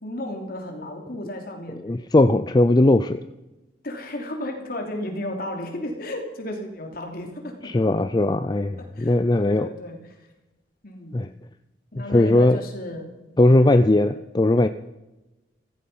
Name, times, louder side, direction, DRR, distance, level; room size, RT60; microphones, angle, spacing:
voice 1, 0.0-1.8 3.8-7.7 8.9-9.1 9.4-10.0 10.8-11.2 11.9-13.6, left 1 dB, 50° left, 3 dB, 3.1 m, -33 dB
voice 2, 1.8-3.2 7.6-9.7 11.1-11.3 12.1-12.6 13.4-14.7, left 2 dB, 20° left, 10 dB, 0.4 m, -18 dB
15.5 x 15.5 x 5.6 m, 1.0 s
head